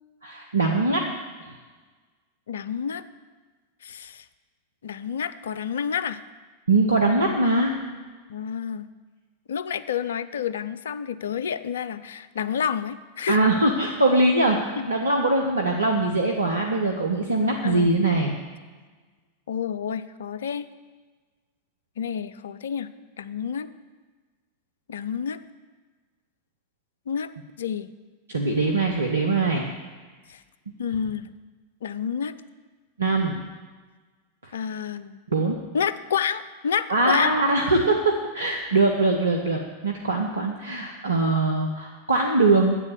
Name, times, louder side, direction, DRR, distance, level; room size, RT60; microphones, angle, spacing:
voice 1, 0.2-1.0 6.7-7.7 13.3-18.4 28.3-29.7 33.0-33.4 34.4-34.7 35.3-35.6 36.9-42.8, right 2 dB, 75° right, 1 dB, 1.0 m, -22 dB
voice 2, 2.5-3.0 3.8-4.2 4.8-6.2 8.3-8.9 9.5-13.4 14.8-14.9 17.6-17.9 19.5-20.7 22.0-22.9 23.2-23.7 24.9-25.4 27.1-27.3 27.6-27.9 30.3-30.4 30.8-31.3 31.8-32.3 34.5-35.2 35.7-37.3, left 7 dB, 65° left, 14 dB, 0.5 m, -29 dB
10.0 x 8.1 x 7.1 m, 1.4 s
figure-of-eight pair, 90°, 0 cm